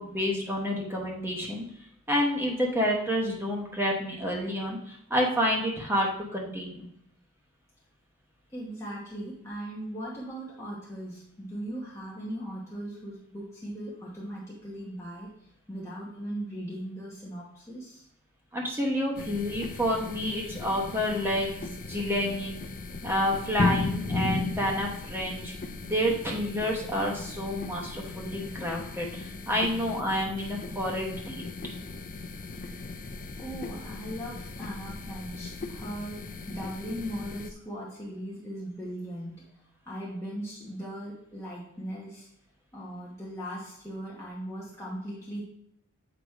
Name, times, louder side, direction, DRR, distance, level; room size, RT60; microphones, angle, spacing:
voice 1, 0.0-1.6 2.1-6.9 18.5-22.6 23.0-25.5 25.8-31.4, equal, 10° right, -2 dB, 1.1 m, -29 dB
voice 2, 8.5-18.1 33.4-39.4 39.9-42.3 42.7-45.4, right 1 dB, 15° left, -6 dB, 1.1 m, -38 dB
sound 1, 19.2-37.5, left 3 dB, 35° left, 0.4 m, -36 dB
8.1 x 2.9 x 4.7 m, 0.73 s
head